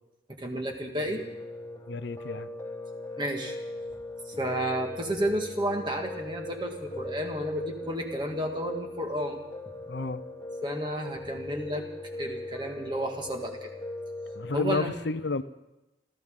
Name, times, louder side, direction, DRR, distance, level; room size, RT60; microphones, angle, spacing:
voice 1, 0.4-1.2 3.2-3.6 4.3-9.4 10.6-11.9 12.2-13.7 14.5-14.9, equal, 25° right, 2 dB, 1.8 m, -31 dB
Piano, 0.9-14.7, left 1 dB, 10° left, 1.8 m, -40 dB
voice 2, 1.9-2.5 9.9-10.2 14.4-15.4, left 3 dB, 65° left, 13 dB, 0.7 m, -31 dB
28.5 x 13.5 x 3.8 m, 1.0 s
head